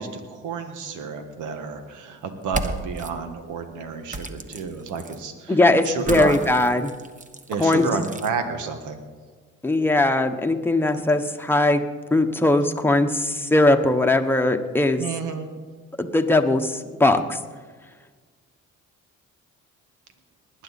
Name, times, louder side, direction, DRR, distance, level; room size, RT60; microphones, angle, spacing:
voice 1, 0.0-5.5 5.8-6.4 7.5-9.0 15.0-15.5, right 5 dB, 85° right, 7 dB, 1.5 m, -30 dB
sound 1, 2.4-3.1 4.1-5.2 6.0-8.3, right 2 dB, 25° right, 1.1 m, -34 dB
voice 2, 5.5-6.9 7.6-7.9 9.6-11.8 12.1-15.0 16.0-17.4, left 2 dB, 5° left, 5 dB, 1.0 m, -20 dB
19.5 x 10.5 x 4.2 m, 1.5 s
cardioid pair, 90°, 30 cm